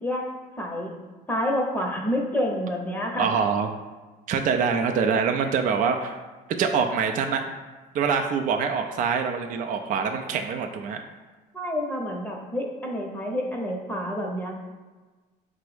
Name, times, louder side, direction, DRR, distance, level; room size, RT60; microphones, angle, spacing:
voice 1, 0.6-0.9 1.3-3.3 11.5-14.6, equal, 10° left, -1 dB, 0.7 m, -28 dB
voice 2, 3.2-3.7 4.3-6.2 6.6-7.4 7.9-11.0, right 6 dB, 50° right, 4 dB, 0.4 m, -24 dB
5.1 x 2.0 x 4.7 m, 1.3 s
cardioid pair, 110°, 17 cm